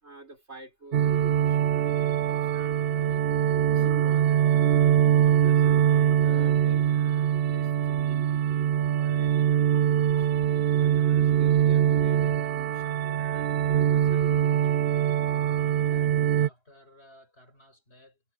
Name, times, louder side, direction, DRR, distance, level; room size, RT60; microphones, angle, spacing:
voice 1, 0.0-3.2 3.7-10.3 10.7-14.3 14.6-14.8, right 2 dB, 85° right, 5.9 m, -48 dB
sound 1, 0.9-16.5, right 10 dB, 65° right, 0.8 m, -23 dB
voice 2, 15.6-18.2, left 1 dB, 70° left, 7.8 m, -56 dB
omnidirectional pair, 1.1 m